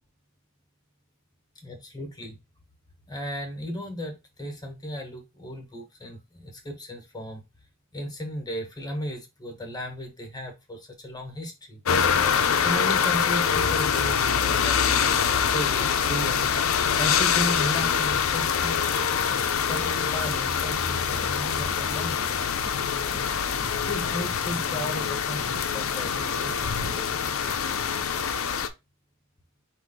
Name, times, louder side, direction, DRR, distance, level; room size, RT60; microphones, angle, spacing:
voice 1, 1.6-2.4 3.1-7.4 7.9-11.8 12.6-16.6 17.0-18.8 19.7-22.5 23.8-27.5, equal, 20° left, 4 dB, 1.2 m, -35 dB
sound 1, 11.9-28.7, left 7 dB, 70° left, 0.5 m, -25 dB
sound 2, 19.3-26.9, right 2 dB, 50° right, 0.9 m, -44 dB
4.6 x 2.6 x 3.9 m, 0.23 s
head